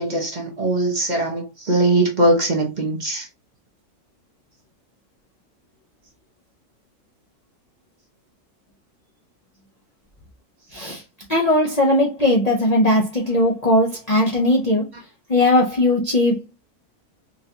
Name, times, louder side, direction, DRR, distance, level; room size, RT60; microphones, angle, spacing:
voice 1, 0.0-3.3, right 1 dB, 35° right, 0.8 m, -21 dB
voice 2, 10.7-11.0 11.3-14.9 15.3-16.5, left 1 dB, 45° left, 0.5 m, -18 dB
3.9 x 2.4 x 2.7 m
omnidirectional pair, 1.6 m